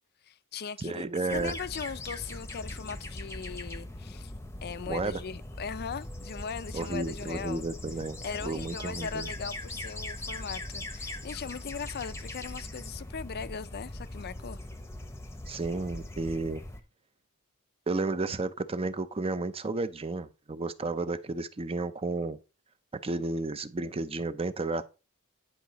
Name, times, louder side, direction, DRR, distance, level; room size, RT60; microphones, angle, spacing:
voice 1, 0.2-4.3 4.6-7.6 8.2-14.6, left 6 dB, 45° left, 0.5 m, -39 dB
voice 2, 0.8-1.5 4.9-5.2 6.7-9.3 15.5-16.6 17.9-22.4 23.0-24.9, right 3 dB, 25° right, 0.6 m, -32 dB
sound 1, 1.3-16.8, left 1 dB, 10° left, 0.8 m, -41 dB
9.9 x 5.7 x 4.0 m
head